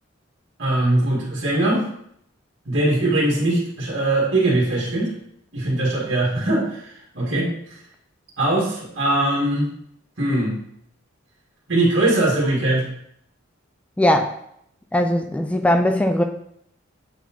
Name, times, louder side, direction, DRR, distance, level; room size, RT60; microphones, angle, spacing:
voice 1, 0.6-1.8 2.7-5.1 5.5-7.5 8.4-9.7 10.2-10.6 11.7-12.9, right 1 dB, 65° right, -6 dB, 1.9 m, -21 dB
voice 2, 14.0-14.3 14.9-16.2, left 1 dB, 5° left, 5 dB, 0.3 m, -19 dB
8.1 x 4.1 x 3.0 m, 0.70 s
head